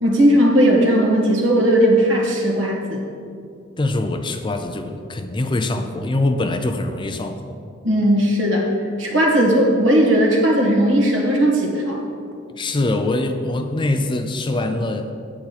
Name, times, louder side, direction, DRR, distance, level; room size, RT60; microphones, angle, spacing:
voice 1, 0.0-3.0 7.8-8.7 9.0-12.0, equal, 70° right, -1 dB, 1.7 m, -17 dB
voice 2, 3.8-7.6 12.6-15.1, left 2 dB, 25° left, 6 dB, 0.4 m, -23 dB
8.7 x 8.3 x 4.2 m, 2.4 s
head